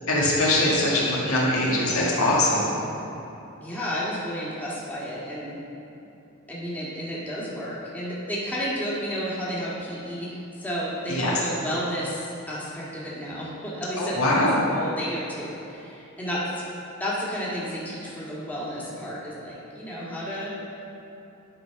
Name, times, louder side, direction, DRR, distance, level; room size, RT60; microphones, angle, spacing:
voice 1, 0.1-2.7 11.1-11.4 14.0-14.6, left 1 dB, 80° left, -5 dB, 1.9 m, -22 dB
voice 2, 3.6-5.6 6.5-14.2 14.7-16.4 17.0-20.5, equal, 10° left, -8 dB, 1.6 m, -32 dB
11.0 x 3.9 x 5.7 m, 3.0 s
head